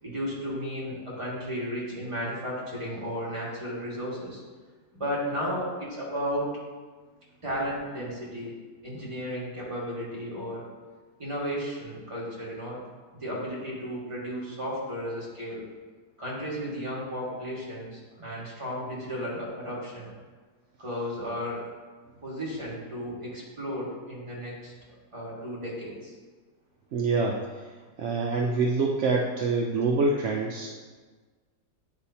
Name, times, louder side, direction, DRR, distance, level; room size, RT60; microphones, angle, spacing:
voice 1, 0.0-4.4 4.9-6.5 7.4-8.5 8.8-10.6 11.2-12.8 13.2-15.6 16.2-20.1 20.8-21.7 22.2-24.7 25.1-26.2, equal, 20° right, -6 dB, 1.7 m, -34 dB
voice 2, 26.9-27.4 28.0-30.7, right 3 dB, 65° right, -1 dB, 0.7 m, -25 dB
8.8 x 4.5 x 2.8 m, 1.4 s
omnidirectional pair, 1.7 m